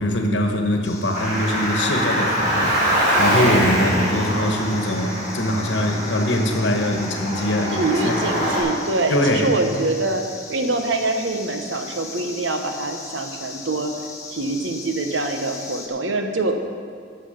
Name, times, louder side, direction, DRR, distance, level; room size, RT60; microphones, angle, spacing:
voice 1, 0.0-8.2 9.1-9.5, left 1 dB, 70° left, 3 dB, 1.3 m, -22 dB
sound 1, 0.8-15.9, left 3 dB, 15° left, 1.0 m, -39 dB
Car, 1.1-8.6, equal, 45° right, 2.6 m, -24 dB
voice 2, 7.7-13.9 14.3-16.6, right 2 dB, 75° right, 5 dB, 1.0 m, -24 dB
12.0 x 7.6 x 5.1 m, 2.3 s
head